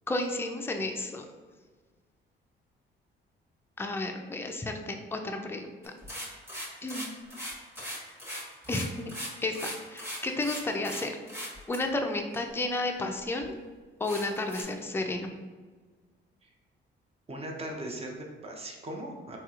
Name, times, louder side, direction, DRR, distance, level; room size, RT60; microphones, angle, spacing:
voice 1, 0.1-1.3 3.8-6.0 6.8-7.1 8.7-9.1 9.4-11.1 11.7-13.5 14.0-15.3, left 2 dB, 10° left, 4 dB, 0.4 m, -32 dB
sound 1, 5.8-11.0 11.3-11.8 12.3-12.4 13.0-13.1 13.4-13.5 14.0-14.6, equal, 10° right, 1.1 m, -39 dB
voice 2, 17.3-19.4, right 1 dB, 30° right, 1 dB, 0.7 m, -39 dB
4.0 x 2.9 x 2.4 m, 1.4 s
cardioid pair, 90°, 20 cm